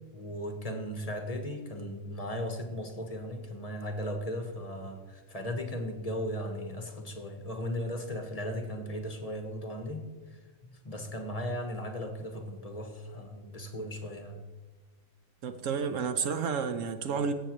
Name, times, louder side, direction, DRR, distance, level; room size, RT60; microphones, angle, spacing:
voice 1, 0.1-10.4 10.7-14.4, equal, 30° left, 5 dB, 1.0 m, -37 dB
voice 2, 15.4-17.3, right 6 dB, 65° right, 9 dB, 0.9 m, -31 dB
16.5 x 7.8 x 3.0 m, 1.4 s
omnidirectional pair, 1.5 m